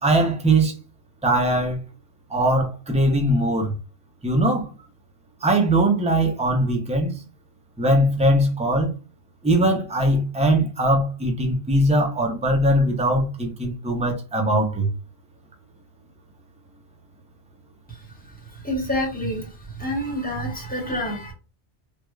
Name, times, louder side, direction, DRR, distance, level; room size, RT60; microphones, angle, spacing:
voice 1, 0.0-0.7 1.2-1.8 2.3-3.7 4.2-4.7 5.4-7.1 7.8-8.9 9.4-14.9, right 1 dB, 10° right, 0.5 m, -20 dB
voice 2, 17.9-21.3, equal, 10° left, 1.2 m, -29 dB
3.4 x 2.4 x 3.1 m
omnidirectional pair, 1.2 m